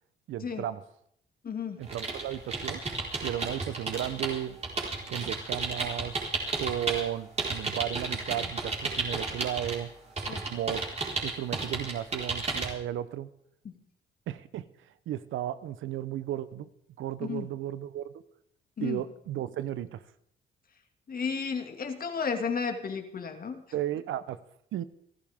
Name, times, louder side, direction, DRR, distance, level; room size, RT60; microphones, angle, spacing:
voice 1, 0.3-0.8 1.8-2.8 3.2-4.6 5.1-6.1 6.6-9.9 10.5-10.8 11.2-13.3 14.3-14.6 15.1-16.7 17.0-18.1 18.8-20.0 23.7-24.4 24.7-24.8, right 12 dB, 80° right, 14 dB, 0.9 m, -34 dB
voice 2, 1.4-1.9 10.3-10.4 13.6-13.7 17.2-17.5 18.8-19.0 21.1-23.6, left 6 dB, 45° left, 5 dB, 2.3 m, -33 dB
sound 1, 1.8-7.0 7.4-9.8 10.2-12.7, right 3 dB, 35° right, 4.7 m, -33 dB
29.5 x 12.0 x 3.7 m, 0.71 s
cardioid pair, 90°, 20 cm